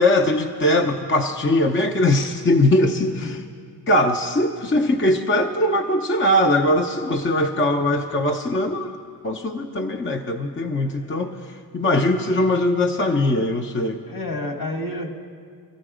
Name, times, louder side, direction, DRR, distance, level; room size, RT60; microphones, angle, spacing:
voice 1, 0.0-3.4 3.9-8.9 9.2-14.0, left 1 dB, 30° left, 3 dB, 0.7 m, -21 dB
voice 2, 10.8-11.3 14.1-15.2, left 1 dB, 55° left, 4 dB, 1.7 m, -31 dB
17.5 x 13.0 x 5.0 m, 2.2 s
cardioid pair, 65°, 43 cm